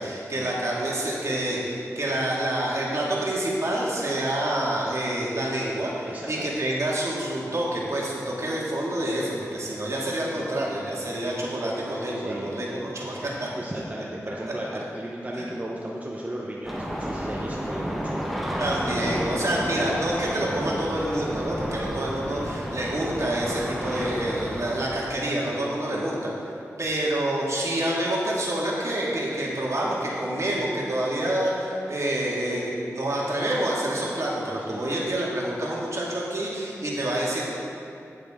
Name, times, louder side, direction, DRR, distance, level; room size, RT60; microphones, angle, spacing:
voice 1, 0.0-13.5 15.3-15.5 18.6-26.1 26.8-37.5, right 1 dB, 60° right, -5 dB, 2.1 m, -27 dB
voice 2, 6.0-6.7 10.3-10.5 11.6-11.7 12.1-12.5 13.2-18.2 19.4-19.6 22.3-22.5 25.9-26.0 34.7-34.8, right 1 dB, 25° right, -4 dB, 1.0 m, -35 dB
sound 1, 16.6-24.8, equal, ahead, 1.3 m, -31 dB
9.2 x 9.1 x 3.7 m, 2.6 s
wide cardioid pair, 60°, 6 cm